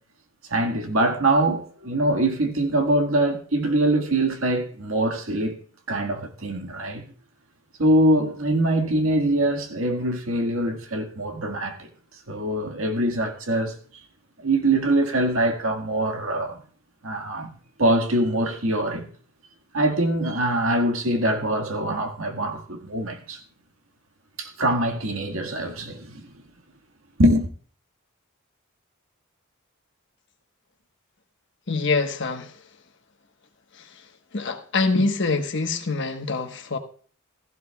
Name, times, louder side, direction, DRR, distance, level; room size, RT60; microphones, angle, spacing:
voice 1, 0.5-5.6 5.9-7.0 7.8-11.9 12.3-13.7 14.4-16.6 17.0-17.5 17.8-19.1 19.7-23.4 24.4-26.2 27.2-27.5, right 1 dB, 75° right, 1.8 m, -23 dB
voice 2, 31.7-32.5 33.8-33.9 34.3-36.8, left 3 dB, 55° left, 1.3 m, -25 dB
16.0 x 15.0 x 2.3 m
head